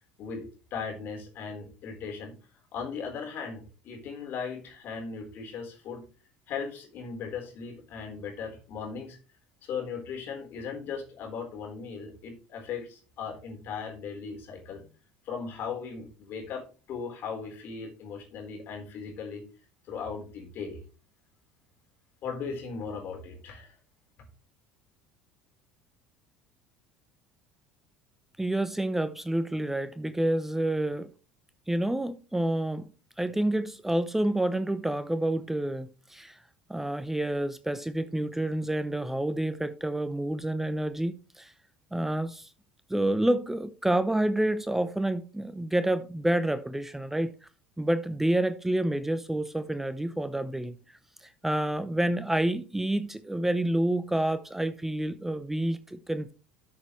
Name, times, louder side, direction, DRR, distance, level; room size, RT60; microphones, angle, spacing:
voice 1, 0.2-6.0 6.5-9.2 9.6-14.9 15.2-19.4 19.8-20.8 22.2-23.7, left 5 dB, 55° left, 4.1 m, -38 dB
voice 2, 28.4-31.1 31.7-32.8 33.2-36.4 36.7-41.5 41.9-42.5 42.9-47.3 47.8-50.7 51.2-56.3, right 1 dB, 5° right, 0.7 m, -28 dB
12.5 x 6.7 x 3.2 m
hypercardioid pair, 75°, 4 cm